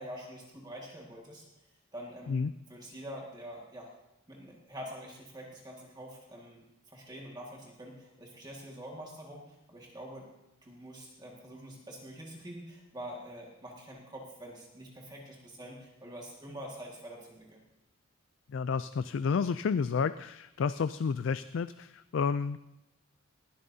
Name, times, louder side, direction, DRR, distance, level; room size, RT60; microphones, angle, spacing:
voice 1, 0.0-2.4 2.7-3.9 4.3-10.3 10.6-17.6, equal, 20° right, -2 dB, 1.8 m, -46 dB
voice 2, 18.5-22.6, left 5 dB, 60° left, 13 dB, 0.3 m, -30 dB
19.0 x 12.5 x 2.7 m, 0.90 s
head